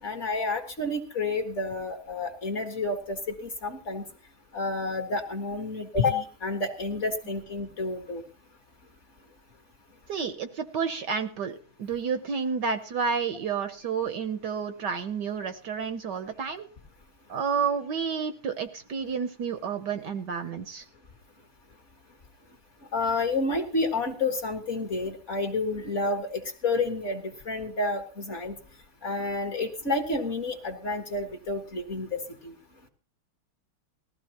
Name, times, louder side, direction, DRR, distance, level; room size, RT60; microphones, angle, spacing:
voice 1, 0.0-4.0 4.5-8.2 22.9-28.5 29.0-32.5, left 3 dB, 40° left, 5 dB, 1.5 m, -30 dB
voice 2, 10.1-16.7 17.3-20.8, right 6 dB, 65° right, 9 dB, 1.2 m, -30 dB
19.5 x 14.5 x 2.9 m, 0.38 s
omnidirectional pair, 2.3 m